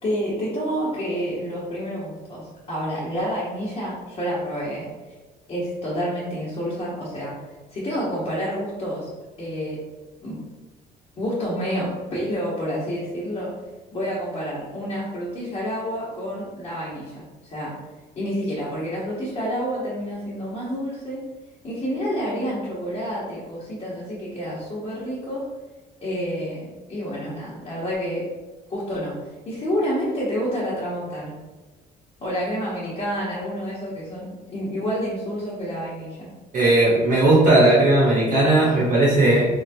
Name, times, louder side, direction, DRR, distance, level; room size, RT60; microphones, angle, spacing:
voice 1, 0.0-4.9 5.5-7.3 7.7-9.1 9.4-9.8 10.2-10.4 11.2-13.5 13.9-17.7 18.2-21.2 21.6-25.4 26.0-28.2 28.7-29.1 29.5-31.3 32.2-36.3, equal, 35° left, -9 dB, 1.0 m, -28 dB
voice 2, 36.5-39.5, right 2 dB, 50° right, -7 dB, 1.0 m, -17 dB
3.1 x 2.3 x 2.7 m, 1.2 s
cardioid pair, 110°, 17 cm